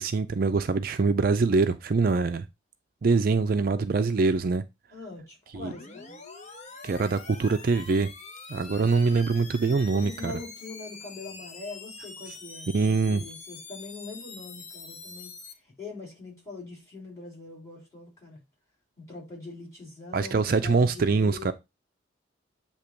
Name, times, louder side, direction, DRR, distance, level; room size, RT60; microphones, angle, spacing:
voice 1, 0.0-2.4 3.0-4.6 5.5-5.7 6.8-8.1 8.5-10.3 12.7-13.2 20.1-21.5, right 4 dB, 50° right, 0.4 m, -24 dB
voice 2, 4.9-6.2 9.9-15.4 15.6-18.4 19.0-21.5, left 3 dB, 15° left, 3.7 m, -42 dB
sound 1, 5.5-15.5, left 4 dB, 35° left, 0.9 m, -44 dB
8.4 x 2.9 x 4.4 m
head